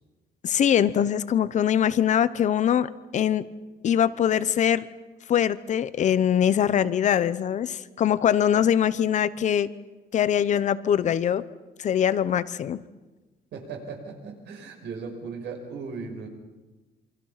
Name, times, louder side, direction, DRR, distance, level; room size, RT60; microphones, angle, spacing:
voice 1, 0.4-3.5 3.8-4.9 5.3-9.7 10.1-11.4 11.8-12.8, left 9 dB, 45° left, 15 dB, 0.8 m, -22 dB
voice 2, 13.5-16.3, right 4 dB, 85° right, 3 dB, 5.9 m, -37 dB
28.0 x 25.0 x 5.8 m, 1.2 s
cardioid pair, 175°, 17 cm